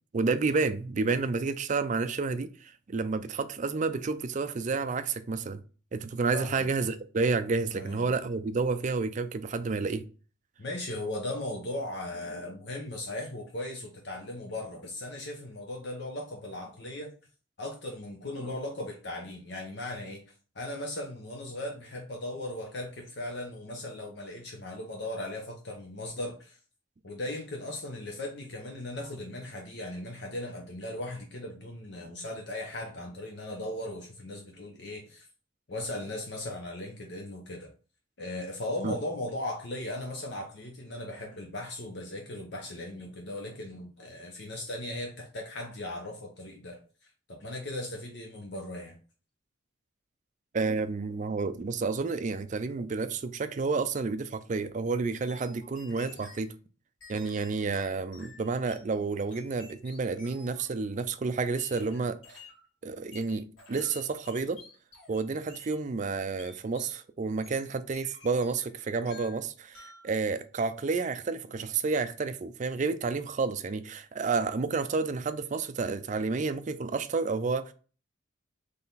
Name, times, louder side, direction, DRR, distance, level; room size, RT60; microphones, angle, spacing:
voice 1, 0.1-5.6 5.9-10.0 38.8-39.0 50.5-56.5 57.1-62.2 62.8-64.6 65.1-77.7, right 4 dB, 40° right, 0.4 m, -30 dB
voice 2, 6.3-6.7 7.7-8.1 10.6-17.1 17.6-20.2 20.5-26.6 27.0-35.3 35.7-37.7 38.2-46.8 47.3-49.0, left 1 dB, 60° left, 0.8 m, -37 dB
sound 1, 55.2-56.5 57.0-58.9 59.3-60.7 61.6-62.6 63.1-65.2 65.5-65.8 66.4-67.0 67.4-68.7 69.0-69.4 69.7-70.1, left 3 dB, 80° left, 2.1 m, -51 dB
3.8 x 3.4 x 4.0 m
head